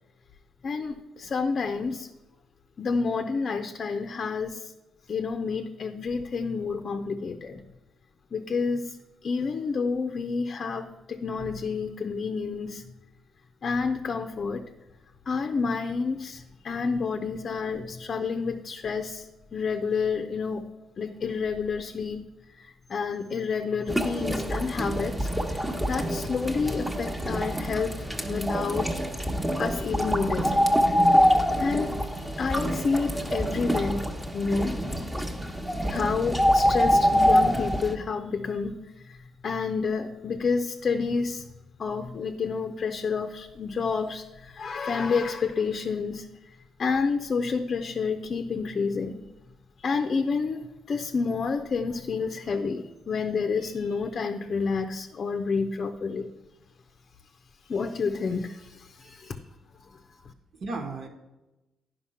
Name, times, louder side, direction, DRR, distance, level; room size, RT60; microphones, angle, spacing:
voice 1, 0.6-2.1 2.8-4.7 5.1-7.7 8.3-9.0 9.2-12.8 13.6-14.7 15.3-19.3 19.5-20.6 21.0-22.2 22.6-28.0 28.3-28.9 29.6-30.7 31.6-32.0 32.4-34.0 34.3-34.8 35.9-38.8 39.1-39.2 39.4-41.5 41.8-46.3 46.8-49.2 49.8-56.3 57.6-59.4, left 5 dB, 45° left, 6 dB, 0.6 m, -29 dB
sound 1, 23.9-38.0, equal, 10° right, 1.0 m, -25 dB
voice 2, 59.0-59.4 60.5-61.1, right 3 dB, 60° right, 4 dB, 1.4 m, -36 dB
9.9 x 5.4 x 5.7 m, 1.0 s
cardioid pair, 90°, 0 cm